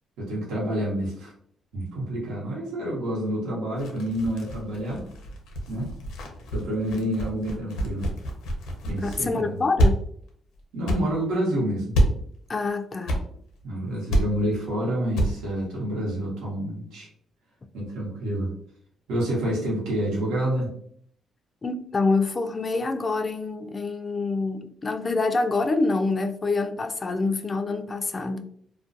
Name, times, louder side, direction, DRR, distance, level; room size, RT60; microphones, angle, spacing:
voice 1, 0.2-1.3 1.7-5.0 5.7-5.9 6.5-8.1 8.8-9.6 10.7-12.0 13.6-17.1 17.7-18.5 19.1-20.7, right 1 dB, 90° right, 1.0 m, -28 dB
sound 1, 3.8-9.3 9.8-9.9 10.3-10.4 10.9-11.0 11.9-12.1 13.0-13.2 13.5-13.6 14.1-14.2 14.6-14.7 15.1-15.3 15.6-15.7, equal, 90° left, 0.6 m, -26 dB
voice 2, 9.0-10.0 12.5-13.2 21.6-28.4, left 3 dB, 30° left, 0.3 m, -26 dB
2.4 x 2.2 x 2.5 m
cardioid pair, 90°, 0 cm